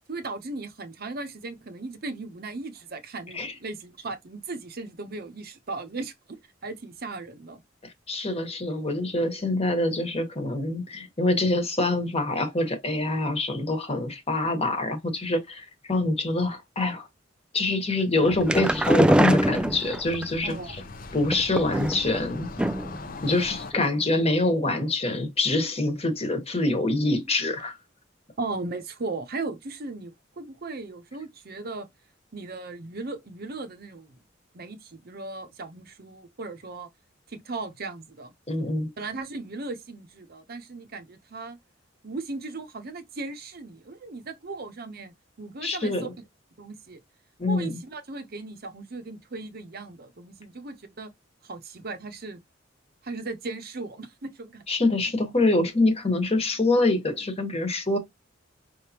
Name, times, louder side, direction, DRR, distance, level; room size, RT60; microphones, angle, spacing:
voice 1, 0.1-7.6 20.4-20.7 28.4-31.9 32.3-34.2 34.5-36.9 37.3-38.3 39.0-41.6 42.0-46.1 46.6-47.0 47.5-51.1 51.4-52.4 53.0-54.6, right 3 dB, 55° right, 0.8 m, -37 dB
voice 2, 8.1-17.1 17.5-20.8 21.1-22.5 23.2-27.8 38.5-38.9 45.6-46.1 47.4-47.8 54.7-58.0, left 2 dB, 35° left, 1.3 m, -25 dB
sound 1, 18.2-20.3 21.2-22.2 22.6-23.0 23.3-23.4 23.7-23.8, equal, 5° right, 0.3 m, -23 dB
sound 2, 18.3-23.7, left 3 dB, 50° left, 0.7 m, -41 dB
5.5 x 3.4 x 2.9 m
head